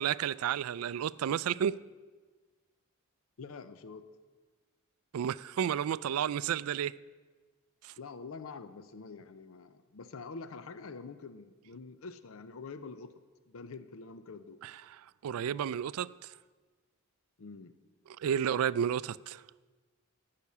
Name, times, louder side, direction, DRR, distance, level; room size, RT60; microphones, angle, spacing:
voice 1, 0.0-1.8 5.1-6.9 7.8-7.9 14.6-16.3 18.2-19.4, right 9 dB, 85° right, 0.3 m, -32 dB
voice 2, 3.4-4.1 8.0-13.1 13.5-14.6 17.4-17.7, left 4 dB, 70° left, 0.6 m, -46 dB
13.0 x 5.8 x 8.2 m
head